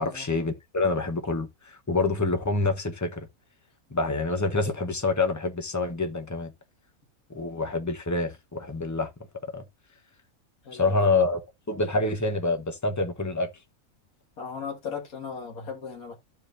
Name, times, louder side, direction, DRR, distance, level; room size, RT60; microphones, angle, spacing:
voice 1, 0.0-3.3 3.9-6.5 7.3-9.1 9.5-9.6 10.7-11.4 11.7-13.5, left 3 dB, 15° left, 0.7 m, -27 dB
voice 2, 10.6-11.1 14.4-16.1, left 6 dB, 70° left, 2.2 m, -37 dB
14.0 x 4.9 x 2.5 m
omnidirectional pair, 1.5 m